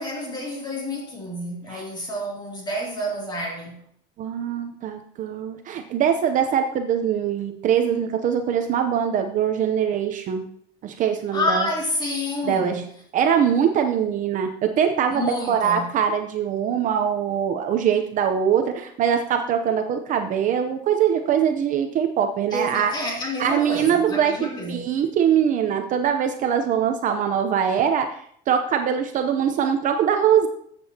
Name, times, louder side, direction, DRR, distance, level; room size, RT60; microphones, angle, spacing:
voice 1, 0.0-3.8 11.3-12.9 15.1-15.9 22.5-24.9, left 1 dB, 20° left, 2.7 m, -29 dB
voice 2, 4.2-10.5 10.8-11.7 12.4-12.8 13.1-22.9 23.4-30.5, right 8 dB, 40° right, 0.7 m, -22 dB
13.5 x 7.8 x 2.8 m
cardioid pair, 160°, 21 cm